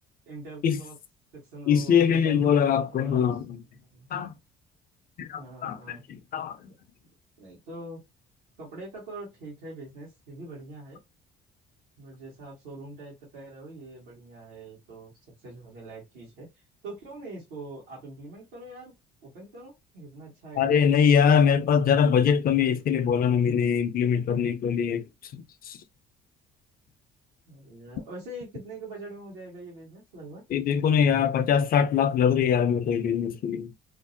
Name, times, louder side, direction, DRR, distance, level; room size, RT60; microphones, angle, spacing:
voice 1, 0.3-1.0 1.3-3.3 3.7-4.1 5.4-6.0 6.6-6.7 7.4-8.0 8.6-11.0 12.0-15.1 15.4-16.5 16.8-18.9 19.2-21.6 27.5-30.4, right 2 dB, 90° right, 1.0 m, -43 dB
voice 2, 1.7-3.6 4.1-4.3 5.2-6.6 20.6-25.0 25.3-25.8 30.5-33.7, left 7 dB, 50° left, 0.4 m, -23 dB
2.5 x 2.0 x 2.5 m
supercardioid pair, 65°, 20 cm